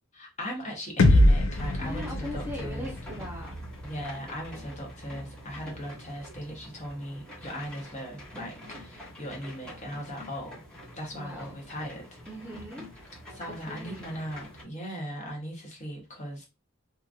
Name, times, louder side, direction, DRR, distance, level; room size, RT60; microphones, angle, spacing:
voice 1, 0.1-2.9 3.8-10.6 10.9-12.0 13.3-16.5, equal, 35° left, 0.9 m, -38 dB
sound 1, 1.0-4.9, left 1 dB, 70° left, 0.5 m, -25 dB
sound 2, 1.5-14.6, equal, 5° left, 1.1 m, -45 dB
voice 2, 1.8-3.5 11.1-11.6 12.3-12.9 13.4-14.1, left 1 dB, 10° right, 0.8 m, -40 dB
2.9 x 2.5 x 2.3 m
head